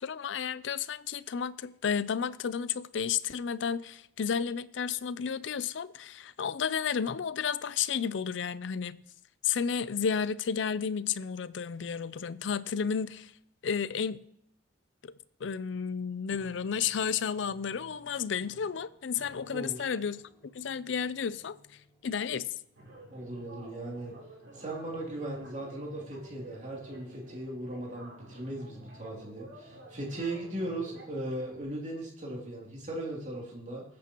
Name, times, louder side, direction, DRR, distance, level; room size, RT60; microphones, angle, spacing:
voice 1, 0.0-9.0 9.4-13.3 13.6-14.2 15.0-15.1 15.4-21.6 22.0-22.5, left 7 dB, 70° left, 0.5 m, -32 dB
Piano, 16.3-23.1, equal, 15° right, 5.9 m, -58 dB
voice 2, 19.5-19.9 23.1-24.1 24.5-33.8, right 1 dB, 40° right, 2.9 m, -38 dB
sound 1, 22.7-31.6, right 1 dB, 80° right, 3.8 m, -50 dB
21.0 x 8.4 x 3.0 m
head